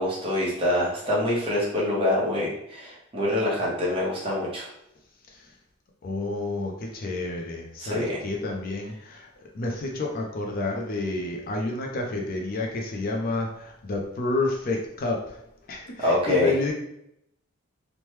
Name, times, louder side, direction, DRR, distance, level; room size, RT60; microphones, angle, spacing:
voice 1, 0.0-4.7 7.8-8.1 16.0-16.5, left 1 dB, 25° right, -5 dB, 0.8 m, -25 dB
voice 2, 6.0-15.4 15.7-16.7, left 2 dB, 40° left, 0 dB, 0.4 m, -30 dB
3.0 x 2.1 x 3.1 m, 0.78 s
head